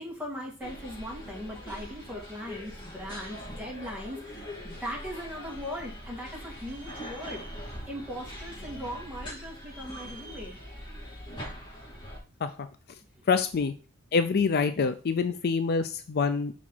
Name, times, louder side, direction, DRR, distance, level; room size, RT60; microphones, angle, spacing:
voice 1, 0.0-7.4 7.9-10.5 13.2-13.3, equal, 5° right, -2 dB, 2.1 m, -39 dB
Tottenham Hale - Burger King in Retail Park, 0.6-12.2, equal, 20° left, 2.8 m, -42 dB
voice 2, 13.3-13.7 14.1-16.5, left 5 dB, 45° left, 10 dB, 0.4 m, -26 dB
6.0 x 4.2 x 4.5 m, 0.36 s
head